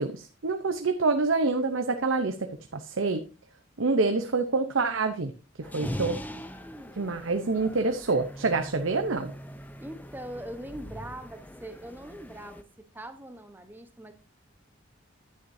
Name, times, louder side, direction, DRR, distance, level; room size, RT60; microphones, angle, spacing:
voice 1, 0.0-2.5 2.7-3.2 3.8-5.3 5.6-6.2 7.0-9.3, right 3 dB, 80° right, 7 dB, 0.8 m, -26 dB
sound 1, 5.6-12.6, equal, 10° left, 0.6 m, -41 dB
voice 2, 5.8-7.1 9.8-12.6 12.9-14.1, right 1 dB, 10° right, 8 dB, 1.0 m, -42 dB
11.0 x 9.4 x 2.7 m, 0.33 s
head